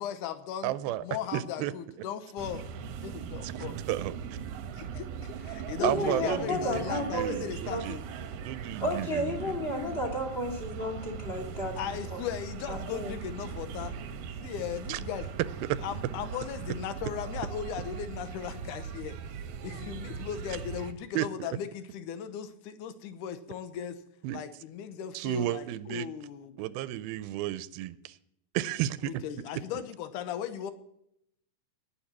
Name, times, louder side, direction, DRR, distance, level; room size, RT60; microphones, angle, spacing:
voice 1, 0.0-0.7 1.0-2.7 3.0-3.8 4.8-8.0 11.8-13.9 14.4-15.3 15.8-19.2 19.6-24.0 24.3-26.6 29.0-30.7, left 9 dB, 70° left, 10 dB, 2.3 m, -37 dB
voice 2, 0.6-1.0 1.3-1.7 3.4-4.1 5.8-8.0 8.4-9.6 14.9-15.0 15.7-15.8 21.2-21.5 24.2-24.4 25.1-26.1 26.6-28.2 28.5-29.2, right 14 dB, 90° right, 16 dB, 2.5 m, -33 dB
sound 1, 2.4-20.9, right 7 dB, 70° right, 2.1 m, -40 dB
voice 3, 5.8-7.3 7.7-7.8 8.8-11.7 12.1-12.2 12.7-13.1, left 1 dB, 20° left, 0 dB, 2.3 m, -32 dB
19.5 x 7.0 x 5.9 m, 0.74 s
omnidirectional pair, 4.2 m